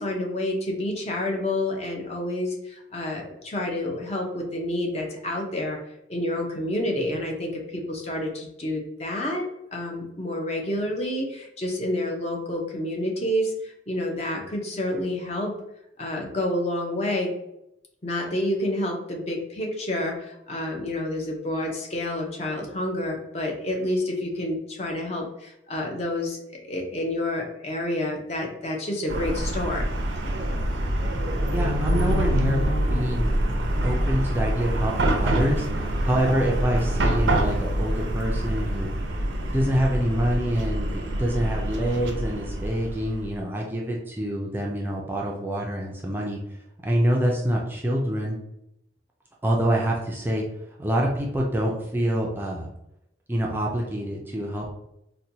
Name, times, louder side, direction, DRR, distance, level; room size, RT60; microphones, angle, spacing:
voice 1, 0.0-5.8 6.1-15.5 16.0-17.3 18.0-29.9, left 1 dB, 35° left, 1 dB, 0.6 m, -29 dB
Chatter / Car passing by / Traffic noise roadway noise, 29.1-43.4, right 1 dB, 85° right, 0.6 m, -26 dB
voice 2, 31.5-32.6 32.9-33.3 33.6-38.9 39.5-46.4 46.8-48.4 49.4-50.5 50.8-52.7 53.3-54.7, equal, 10° right, -2 dB, 0.4 m, -26 dB
4.2 x 2.2 x 2.7 m, 0.80 s
head